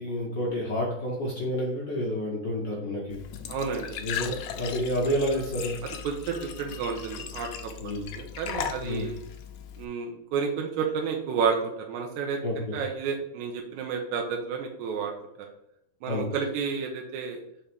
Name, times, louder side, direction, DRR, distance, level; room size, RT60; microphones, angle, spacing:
voice 1, 0.0-3.2 4.0-5.8 7.8-8.1 8.8-9.1 12.4-12.7 16.1-16.2, equal, 60° left, -4 dB, 1.1 m, -29 dB
Glass / Trickle dribble / Fill (with liquid), 3.1-9.8, left 9 dB, 75° left, 1.6 m, -38 dB
voice 2, 3.5-4.0 6.0-7.7 8.1-9.2 9.8-15.1 15.4-15.5 16.0-17.4, right 6 dB, 75° right, 2 dB, 2.1 m, -31 dB
5.6 x 3.5 x 5.1 m, 0.78 s
omnidirectional pair, 3.6 m